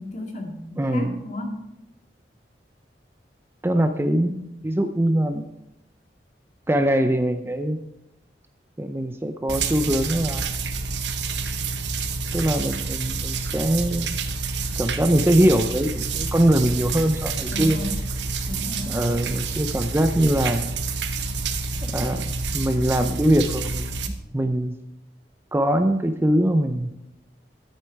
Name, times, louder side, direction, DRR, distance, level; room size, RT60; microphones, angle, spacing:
voice 1, 0.0-1.6 17.5-18.0 18.5-19.0, left 1 dB, 45° left, 2 dB, 2.0 m, -32 dB
voice 2, 0.8-1.1 3.6-5.4 6.7-7.8 8.8-10.6 12.3-14.2 14.8-17.8 18.8-20.6 21.8-23.9 24.3-24.7 25.5-26.9, right 1 dB, 15° right, 7 dB, 0.5 m, -22 dB
sound 1, 9.5-24.1, right 4 dB, 90° right, 1.0 m, -28 dB
12.0 x 8.7 x 4.6 m, 0.89 s
head